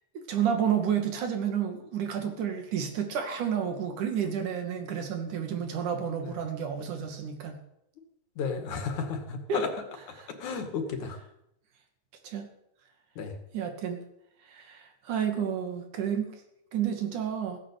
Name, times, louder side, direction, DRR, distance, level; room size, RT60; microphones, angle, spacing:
voice 1, 0.2-7.6 9.5-9.7 10.0-10.3 12.2-12.5 13.5-14.0 14.5-16.3 16.7-17.6, right 8 dB, 90° right, 5 dB, 3.8 m, -30 dB
voice 2, 8.4-9.7 10.4-11.2 13.2-13.3, left 5 dB, 75° left, 5 dB, 3.5 m, -32 dB
16.5 x 10.5 x 8.4 m, 0.80 s
omnidirectional pair, 3.4 m